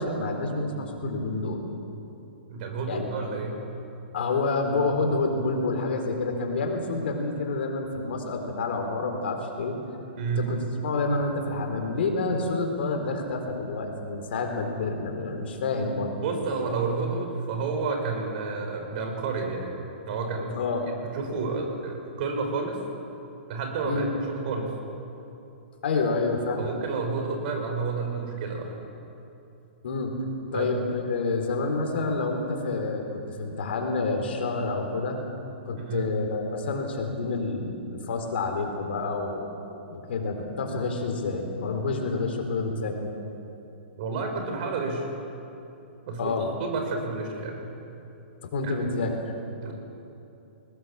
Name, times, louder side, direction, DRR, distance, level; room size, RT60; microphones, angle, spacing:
voice 1, 0.0-1.6 2.9-3.1 4.1-9.8 10.4-16.1 20.5-20.9 23.8-24.1 25.8-26.7 29.8-30.1 30.5-35.2 35.7-39.5 39.9-43.1 46.2-46.5 48.5-49.3, left 3 dB, 65° left, 3 dB, 4.1 m, -28 dB
voice 2, 2.5-3.6 10.2-10.5 16.2-19.8 20.1-20.5 21.1-22.8 23.5-24.7 26.6-28.8 30.5-30.7 35.7-36.1 44.0-45.1 46.0-46.3 46.6-47.7 48.6-48.7 49.6-49.7, right 4 dB, 50° right, 3 dB, 5.4 m, -30 dB
21.0 x 19.5 x 7.3 m, 2.8 s
hypercardioid pair, 120°, 6 cm